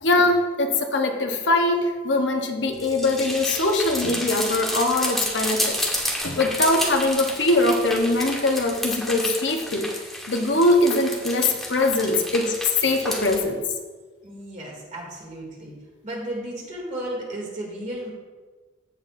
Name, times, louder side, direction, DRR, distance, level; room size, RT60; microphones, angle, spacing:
voice 1, 0.0-9.9 10.3-13.6, left 2 dB, 75° left, 4 dB, 1.0 m, -22 dB
sound 1, 2.7-13.4, equal, ahead, 1.4 m, -30 dB
voice 2, 14.2-15.7 16.0-18.1, right 1 dB, 45° right, -3 dB, 2.7 m, -34 dB
15.5 x 5.7 x 2.6 m, 1.3 s
head